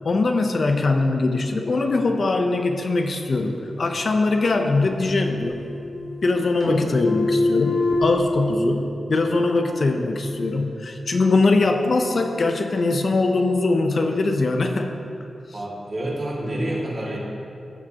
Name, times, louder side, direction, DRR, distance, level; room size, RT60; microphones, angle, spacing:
voice 1, 0.0-5.6 6.2-15.0, left 3 dB, 50° left, 4 dB, 0.6 m, -21 dB
sound 1, 5.0-5.1 5.4-6.3 6.6-8.2, left 2 dB, 75° left, 1.5 m, -25 dB
voice 2, 15.5-17.2, right 1 dB, 40° right, -4 dB, 2.1 m, -28 dB
15.0 x 7.7 x 2.9 m, 2.6 s
wide cardioid pair, 125°, 0 cm